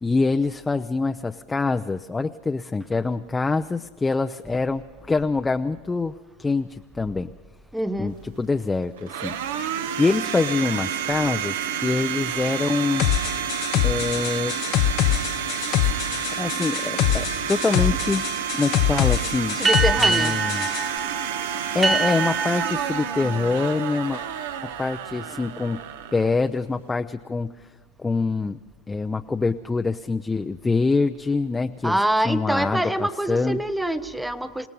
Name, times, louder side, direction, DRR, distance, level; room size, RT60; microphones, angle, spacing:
voice 1, 0.0-4.8 5.1-6.1 6.4-7.3 8.0-13.1 13.8-14.6 15.8-16.0 16.4-18.2 18.5-19.6 20.0-20.7 21.7-24.2 24.6-25.8 26.1-27.5 28.0-28.6 28.9-32.0 32.2-33.6, left 3 dB, 15° left, 7 dB, 0.5 m, -25 dB
voice 2, 7.7-8.1 19.6-20.4 31.8-34.7, right 1 dB, 5° right, 11 dB, 0.9 m, -25 dB
Domestic sounds home sounds, 8.1-26.9, right 8 dB, 80° right, 1.2 m, -30 dB
sound 1, 13.0-20.9, left 11 dB, 50° left, 0.8 m, -24 dB
sound 2, 19.6-24.7, right 4 dB, 20° right, 1.4 m, -26 dB
27.5 x 17.5 x 5.4 m, 1.4 s
supercardioid pair, 120°, 0 cm